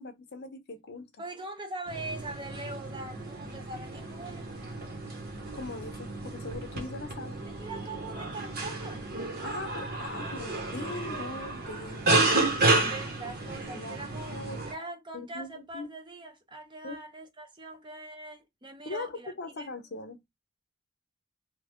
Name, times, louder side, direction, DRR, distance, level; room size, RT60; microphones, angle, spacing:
voice 1, 0.0-1.1 5.5-7.4 9.4-12.3 12.7-14.6 15.1-15.9 16.8-17.0 18.9-20.2, left 3 dB, 50° left, 0.7 m, -41 dB
voice 2, 1.2-4.5 7.5-9.2 12.8-14.4 14.6-19.7, right 2 dB, 20° right, 0.6 m, -42 dB
sound 1, 1.9-14.7, right 2 dB, 45° right, 1.0 m, -31 dB
3.1 x 2.3 x 3.5 m
head